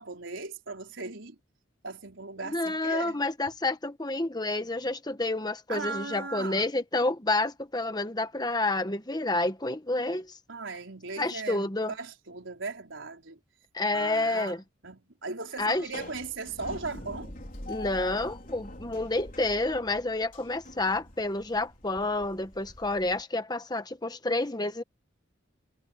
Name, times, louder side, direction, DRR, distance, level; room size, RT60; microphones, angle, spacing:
voice 1, 0.0-1.4 1.8-3.2 5.7-6.7 10.5-13.4 13.9-17.3, right 3 dB, 80° right, 4.3 m, -38 dB
voice 2, 2.4-10.4 11.2-11.9 13.7-14.6 15.6-15.8 17.7-24.8, left 2 dB, 20° left, 1.3 m, -29 dB
sound 1, 15.6-23.2, left 2 dB, 45° left, 4.3 m, -44 dB
head